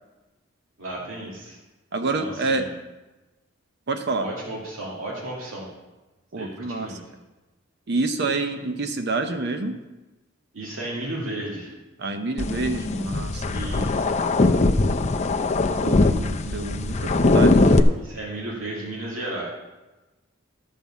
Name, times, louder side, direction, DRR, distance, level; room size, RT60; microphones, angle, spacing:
voice 1, 0.8-1.6 2.1-2.7 4.2-5.7 6.4-7.0 10.5-11.7 13.5-14.1 18.0-19.4, right 1 dB, 80° right, -4 dB, 2.3 m, -33 dB
voice 2, 1.9-2.7 3.9-4.3 6.3-7.0 7.9-9.8 12.0-13.4 15.8-17.9 18.7-18.8, right 3 dB, 55° right, 7 dB, 0.7 m, -28 dB
sound 1, 12.4-17.8, left 2 dB, 35° left, 0.5 m, -21 dB
12.0 x 5.5 x 7.2 m, 1.1 s
head